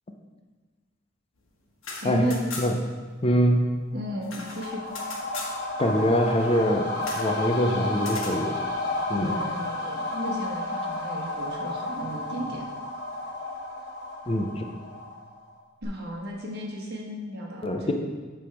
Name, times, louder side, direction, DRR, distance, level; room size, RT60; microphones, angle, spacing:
sound 1, 1.7-2.9 3.2-3.3 3.6-5.6 7.0-7.3 8.0-8.4, left 3 dB, 75° left, 1.3 m, -38 dB
voice 1, 2.0-2.4 3.9-4.8 9.2-12.6 15.8-17.9, equal, 55° right, -2 dB, 1.3 m, -34 dB
voice 2, 3.2-3.7 5.8-8.5 9.1-9.4 14.3-14.6 17.6-17.9, equal, 30° left, 4 dB, 0.5 m, -24 dB
sound 2, 4.1-15.5 15.8-15.9, left 2 dB, 55° left, 1.2 m, -32 dB
8.1 x 3.5 x 5.8 m, 1.4 s
head